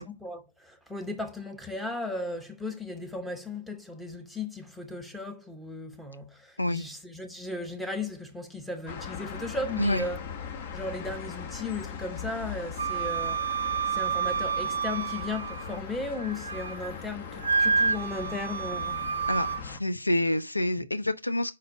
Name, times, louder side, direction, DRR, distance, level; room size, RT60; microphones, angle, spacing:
voice 1, 0.0-10.2 10.7-13.6 13.9-19.0, left 2 dB, ahead, 0.9 m, -36 dB
sound 1, 8.9-19.8, left 7 dB, 40° left, 0.9 m, -40 dB
Wind instrument woodwind instrument, 12.8-15.8 16.2-16.9 17.4-19.6, right 6 dB, 65° right, 0.4 m, -29 dB
voice 2, 19.3-21.6, left 1 dB, 90° left, 0.5 m, -27 dB
5.2 x 4.2 x 5.4 m
figure-of-eight pair, 125°, 0 cm